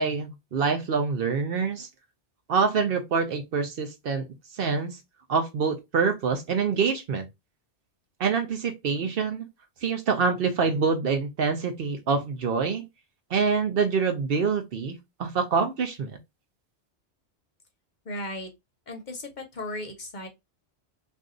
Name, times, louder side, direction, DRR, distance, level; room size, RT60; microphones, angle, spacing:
voice 1, 0.0-1.9 2.5-4.2 4.5-5.0 5.3-7.2 8.2-9.5 9.8-12.9 13.3-16.2, right 5 dB, 60° right, 0.8 m, -26 dB
voice 2, 18.0-18.5 18.9-20.3, left 1 dB, 45° left, 0.8 m, -36 dB
2.6 x 2.3 x 3.7 m
omnidirectional pair, 1.2 m